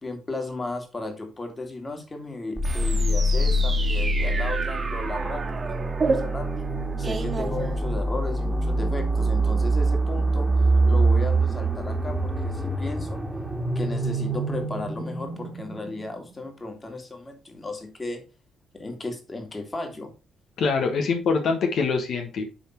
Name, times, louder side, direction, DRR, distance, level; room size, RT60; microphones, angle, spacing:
voice 1, 0.0-5.4 5.7-6.5 7.0-10.5 10.9-13.2 13.8-18.2 18.7-20.1, left 2 dB, 25° left, 4 dB, 2.2 m, -35 dB
sound 1, 2.6-16.3, right 2 dB, 5° right, 1.8 m, -25 dB
sound 2, 2.6-8.3, right 4 dB, 35° right, 1.6 m, -31 dB
voice 2, 20.6-22.5, left 4 dB, 65° left, 3 dB, 1.4 m, -24 dB
9.7 x 3.7 x 4.5 m, 0.31 s
cardioid pair, 90°, 0 cm